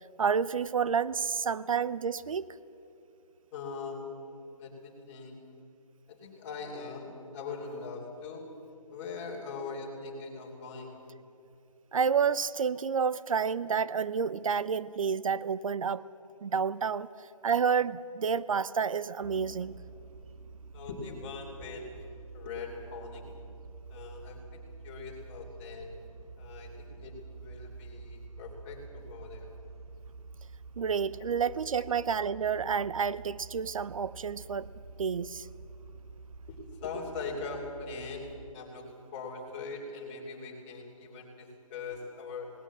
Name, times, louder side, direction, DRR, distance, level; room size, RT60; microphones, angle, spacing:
voice 1, 0.2-2.5 11.9-16.1 16.4-17.1 17.4-19.8 30.8-34.7 35.0-35.5, right 6 dB, 65° right, 18 dB, 0.6 m, -29 dB
voice 2, 3.5-5.4 6.1-8.4 8.9-11.0 20.7-22.1 22.3-23.4 23.9-25.9 26.4-29.5 31.3-31.4 36.5-38.3 38.5-42.5, left 4 dB, 20° left, -1 dB, 3.2 m, -41 dB
sound 1, 19.2-38.5, right 4 dB, 90° right, 0.9 m, -48 dB
19.0 x 18.0 x 8.4 m, 2.7 s
hypercardioid pair, 165°, 18 cm